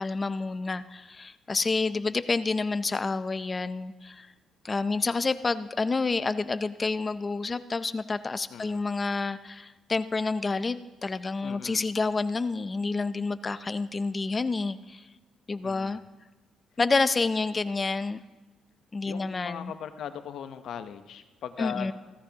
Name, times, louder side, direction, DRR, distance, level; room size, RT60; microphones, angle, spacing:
voice 1, 0.0-4.3 4.6-15.0 15.5-16.0 16.8-18.2 18.9-19.7 21.6-21.9, left 3 dB, 30° left, 13 dB, 0.5 m, -29 dB
voice 2, 8.5-8.8 11.4-11.9 15.6-16.0 19.0-21.9, left 8 dB, 70° left, 10 dB, 0.7 m, -39 dB
16.0 x 14.0 x 2.9 m, 1.2 s
cardioid pair, 90°, 0 cm